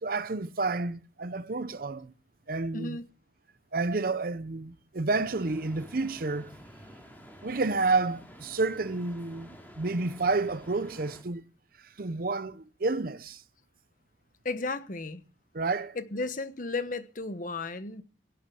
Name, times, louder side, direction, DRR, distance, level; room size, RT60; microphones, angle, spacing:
voice 1, 0.0-2.1 2.5-3.0 3.7-6.5 7.4-11.4 12.0-13.4 15.5-16.0, right 3 dB, 55° right, 0.7 m, -30 dB
voice 2, 2.7-3.0 14.4-15.2 15.9-18.0, left 3 dB, 50° left, 1.2 m, -34 dB
sound 1, 5.1-11.2, equal, 10° left, 4.0 m, -50 dB
17.5 x 10.5 x 7.1 m
head